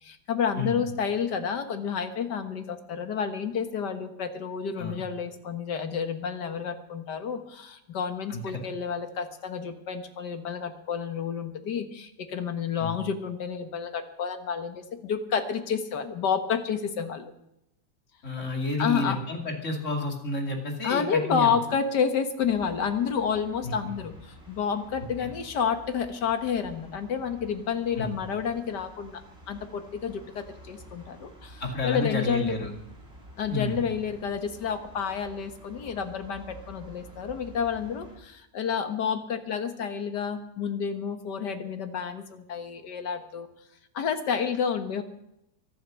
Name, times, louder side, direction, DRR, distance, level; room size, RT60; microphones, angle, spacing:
voice 1, 0.0-17.3 18.4-18.5 18.8-19.2 20.8-29.2 29.5-32.6 33.4-43.5 43.9-45.0, left 7 dB, 75° left, 8 dB, 2.0 m, -30 dB
voice 2, 8.3-8.6 12.8-13.0 18.2-21.5 23.6-23.7 25.2-25.3 28.0-28.2 31.6-32.7 33.4-33.8, left 2 dB, 45° left, 2 dB, 2.9 m, -30 dB
sound 1, 22.4-38.2, equal, 35° right, 4.9 m, -50 dB
23.5 x 7.9 x 6.3 m, 0.83 s
omnidirectional pair, 1.9 m